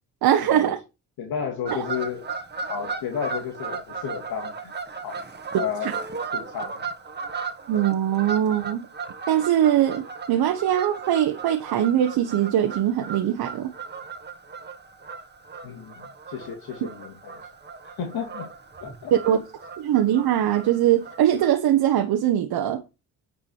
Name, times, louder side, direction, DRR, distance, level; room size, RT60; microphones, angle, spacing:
voice 1, 0.2-0.8 1.7-1.8 5.8-5.9 7.7-8.8 9.3-13.7 19.1-19.4 19.8-22.8, right 11 dB, 70° right, 1.2 m, -22 dB
voice 2, 1.2-2.2 2.7-4.7 5.0-5.2 5.5-5.9 6.3-6.9 15.6-15.9 16.3-17.3 17.8-18.5 18.8-19.1, left 7 dB, 70° left, 2.2 m, -32 dB
Fowl / Bird vocalization bird call bird song, 1.6-21.5, right 5 dB, 25° right, 1.6 m, -36 dB
9.8 x 4.9 x 4.5 m
supercardioid pair, 65°, 39 cm